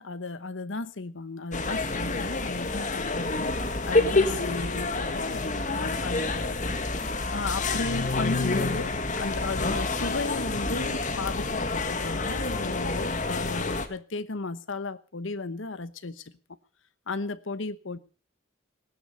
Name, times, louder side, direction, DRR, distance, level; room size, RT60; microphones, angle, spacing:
voice 1, 0.0-3.5 3.9-6.6 7.3-16.2 17.1-18.0, left 3 dB, 75° left, 1.1 m, -35 dB
sound 1, 1.5-13.9, left 3 dB, 40° left, 1.8 m, -28 dB
19.0 x 11.5 x 5.5 m
head